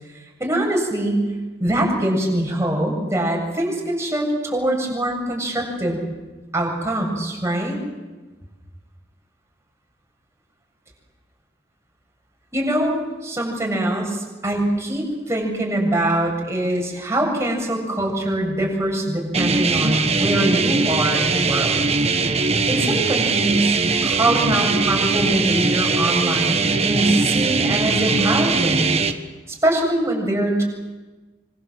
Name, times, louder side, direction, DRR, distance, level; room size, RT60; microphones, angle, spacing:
voice 1, 0.4-1.2 1.6-6.0 6.5-7.8 12.5-21.8 22.7-28.9 29.5-30.6, right 1 dB, 15° right, 0 dB, 7.6 m, -23 dB
sound 1, 19.3-29.1, right 4 dB, 35° right, 1.4 m, -21 dB
26.0 x 25.5 x 7.8 m, 1.2 s
head